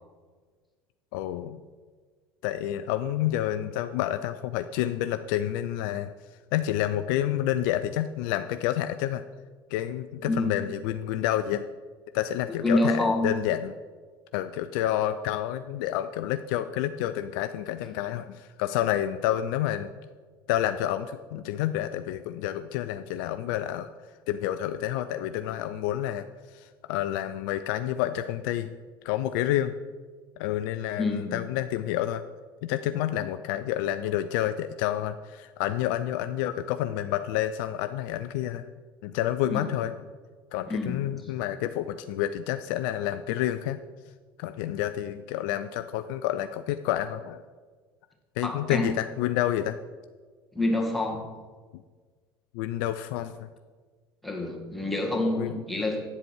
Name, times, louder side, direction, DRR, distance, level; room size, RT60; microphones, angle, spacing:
voice 1, 1.1-1.6 2.4-6.1 6.5-9.2 9.7-11.7 12.1-13.7 14.3-19.9 20.5-23.9 24.3-28.7 29.0-29.7 30.4-32.2 32.6-38.7 39.0-39.9 40.5-43.8 44.4-47.4 48.4-49.8 52.5-53.5 55.4-55.6, left 12 dB, 55° left, 11 dB, 0.4 m, -29 dB
voice 2, 10.2-10.7 12.6-13.4 31.0-31.4 39.5-39.6 40.7-41.1 48.4-49.0 50.5-51.3 54.2-56.0, left 1 dB, ahead, -1 dB, 1.9 m, -27 dB
9.5 x 7.6 x 4.5 m, 1.5 s
figure-of-eight pair, 65°, 13 cm